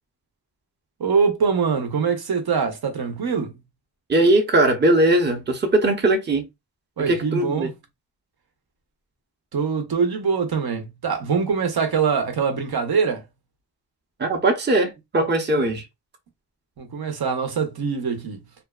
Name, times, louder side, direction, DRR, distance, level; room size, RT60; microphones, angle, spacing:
voice 1, 1.0-3.5 7.0-7.7 9.5-13.2 16.8-18.4, right 5 dB, 60° right, 0.8 m, -23 dB
voice 2, 4.1-6.5 7.1-7.7 14.2-15.8, right 1 dB, 25° right, 0.7 m, -20 dB
2.5 x 2.3 x 2.3 m
cardioid pair, 55°, 43 cm